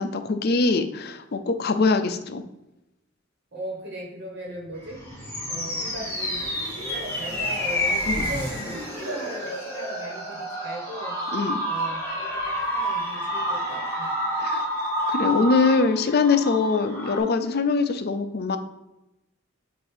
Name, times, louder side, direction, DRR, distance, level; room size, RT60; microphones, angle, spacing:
voice 1, 0.0-2.4 8.1-8.3 11.3-11.6 14.4-14.6 15.1-18.6, left 4 dB, 50° left, 9 dB, 0.5 m, -23 dB
voice 2, 3.5-5.0 5.5-6.4 6.7-11.2 11.7-14.1, right 1 dB, 55° right, -1 dB, 1.4 m, -38 dB
sound 1, 4.5-10.7 11.1-11.4, right 1 dB, 25° right, 1.6 m, -42 dB
sound 2, 4.8-17.2, equal, 10° left, 1.7 m, -29 dB
7.8 x 2.7 x 5.0 m, 0.93 s
head